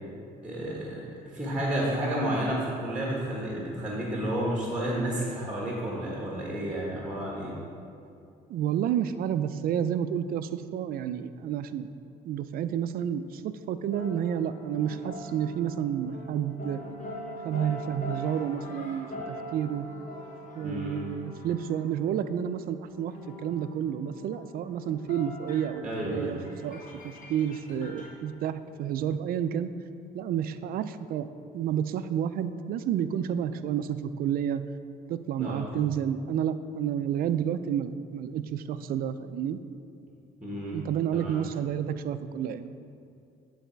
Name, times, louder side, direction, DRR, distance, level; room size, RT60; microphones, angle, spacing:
voice 1, 0.4-7.5 20.6-21.0 25.8-26.4 35.4-35.7 40.4-40.8 41.1-41.4, right 1 dB, 5° right, -4 dB, 1.3 m, -31 dB
voice 2, 8.5-11.9 12.2-16.8 17.4-19.9 20.5-23.1 23.4-29.7 30.1-31.3 31.5-34.6 35.1-39.6 40.7-42.7, right 9 dB, 60° right, 12 dB, 0.4 m, -30 dB
sound 1, 13.9-28.1, equal, 50° left, 1.3 m, -43 dB
10.5 x 4.1 x 4.6 m, 2.5 s
cardioid pair, 110°, 17 cm